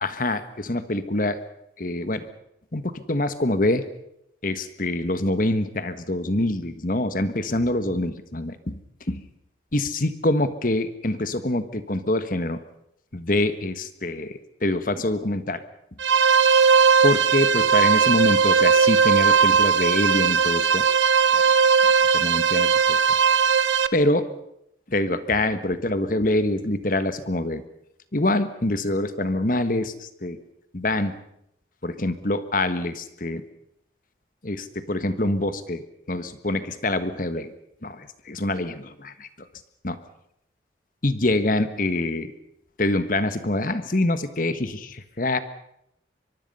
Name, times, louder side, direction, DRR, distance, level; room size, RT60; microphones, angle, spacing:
voice 1, 0.0-1.4 1.8-2.3 2.7-3.9 4.4-8.8 9.1-9.3 9.7-12.6 13.1-15.6 17.0-20.8 21.3-21.5 21.8-23.0 23.9-24.3 24.9-27.6 28.1-30.4 30.7-31.2 31.8-33.4 34.4-37.5 37.8-39.5 39.8-40.0 41.0-42.3 42.8-45.4, left 1 dB, 45° left, 11 dB, 1.4 m, -25 dB
sound 1, 16.0-23.9, right 6 dB, 80° right, 1.0 m, -18 dB
23.5 x 23.5 x 5.6 m, 0.77 s
head